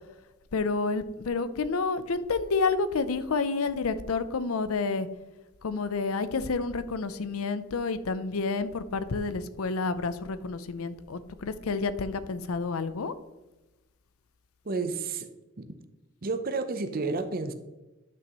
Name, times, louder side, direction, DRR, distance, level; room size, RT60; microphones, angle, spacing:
voice 1, 0.5-5.1 5.6-13.1, left 4 dB, 85° left, 13 dB, 0.6 m, -29 dB
voice 2, 14.6-15.3 15.6-15.7 16.2-17.5, right 3 dB, 45° right, 9 dB, 0.7 m, -30 dB
10.0 x 6.1 x 3.0 m, 1.1 s
head